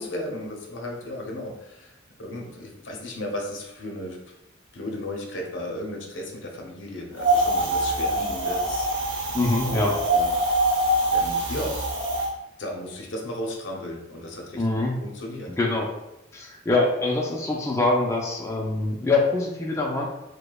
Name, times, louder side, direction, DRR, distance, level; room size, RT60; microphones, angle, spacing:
voice 1, 0.0-1.9 2.2-4.2 4.7-9.9 10.1-10.4 11.1-11.8 12.6-14.6 15.0-15.5, left 1 dB, 80° left, 0 dB, 0.7 m, -35 dB
Wind, 7.2-12.3, right 1 dB, 70° right, 0.8 m, -24 dB
voice 2, 9.3-10.0 14.6-15.0 15.5-15.9 16.3-20.1, left 2 dB, 15° left, -2 dB, 0.3 m, -24 dB
4.7 x 2.1 x 2.2 m, 0.91 s
head